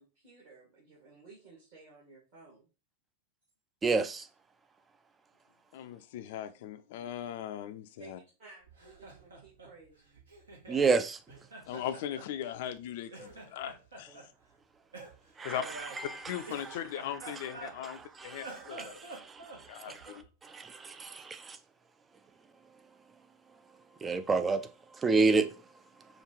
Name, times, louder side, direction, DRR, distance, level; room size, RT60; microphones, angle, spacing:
voice 1, 0.0-2.7 8.0-8.1 8.4-10.2, right 4 dB, 50° right, 1.9 m, -56 dB
voice 2, 3.8-4.3 10.7-11.2 15.4-16.3 17.8-21.6 24.0-25.5, right 4 dB, 15° right, 0.4 m, -30 dB
voice 3, 5.7-8.2 11.7-14.3 15.4-15.6 16.3-19.0 19.7-20.3, left 10 dB, 50° left, 0.4 m, -39 dB
Laughter, 8.6-10.9 11.3-12.8 13.1-14.3 14.9-18.0 18.3-20.3, right 2 dB, 70° right, 1.1 m, -48 dB
5.1 x 2.4 x 3.0 m
figure-of-eight pair, 90°, 0 cm